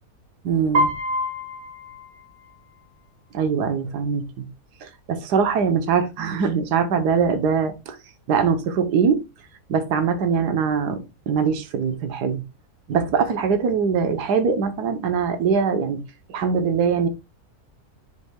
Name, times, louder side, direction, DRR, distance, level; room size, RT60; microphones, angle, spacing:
voice 1, 0.4-0.9 3.3-4.4 4.8-8.0 8.3-9.2 9.7-12.4 12.9-16.0 16.3-17.1, right 6 dB, 80° right, 1.5 m, -22 dB
Piano, 0.7-2.8, equal, 40° right, 2.4 m, -26 dB
9.7 x 5.5 x 2.2 m
omnidirectional pair, 1.7 m